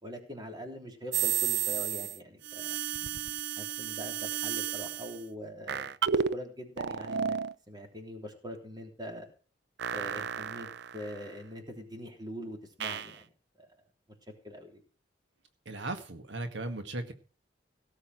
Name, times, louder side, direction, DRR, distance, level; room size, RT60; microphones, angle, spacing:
voice 1, 0.0-2.8 3.6-7.3 7.7-9.2 9.9-10.7 10.9-13.2 14.4-14.8, equal, 25° right, 3 dB, 3.3 m, -43 dB
sound 1, 1.1-2.2 2.4-5.2 5.7-6.4 6.8-7.5 9.8-11.3 12.8-13.2, right 8 dB, 65° right, 0.6 m, -32 dB
voice 2, 15.7-17.1, right 2 dB, 85° right, 8 dB, 1.7 m, -37 dB
17.0 x 6.9 x 6.0 m, 0.39 s
head